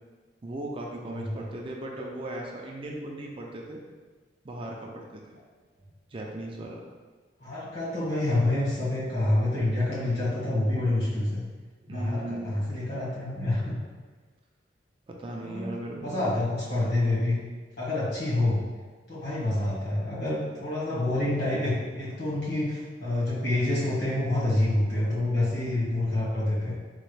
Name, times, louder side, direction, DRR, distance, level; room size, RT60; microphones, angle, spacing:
voice 1, 0.4-3.8 4.4-5.4 6.1-6.8 11.8-12.7 15.1-16.5, right 1 dB, 30° right, 0 dB, 0.4 m, -37 dB
voice 2, 1.1-1.4 7.4-11.4 11.9-13.7 15.4-17.4 17.8-18.6 19.1-26.8, left 1 dB, 65° left, -8 dB, 1.5 m, -27 dB
4.1 x 2.3 x 3.2 m, 1.4 s
head